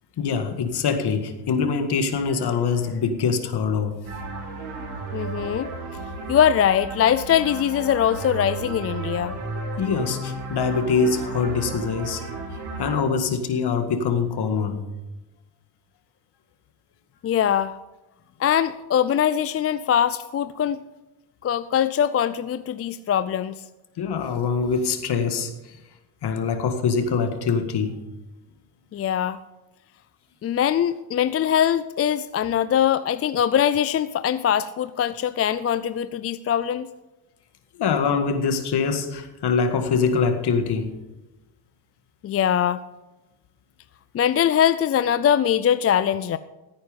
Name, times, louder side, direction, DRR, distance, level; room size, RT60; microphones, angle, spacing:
voice 1, 0.2-4.0 9.8-12.2 12.5-14.8 24.0-25.8 26.2-28.0 37.8-40.9, left 5 dB, 55° left, 7 dB, 1.9 m, -24 dB
sound 1, 4.0-12.9, right 3 dB, 85° right, 4.6 m, -33 dB
voice 2, 5.1-5.7 6.3-9.3 17.2-17.8 18.4-20.8 21.4-23.5 28.9-29.4 30.4-36.9 42.2-42.8 44.1-46.4, left 9 dB, 30° left, 14 dB, 0.4 m, -22 dB
15.5 x 9.1 x 5.2 m, 1.1 s
cardioid pair, 105°, 48 cm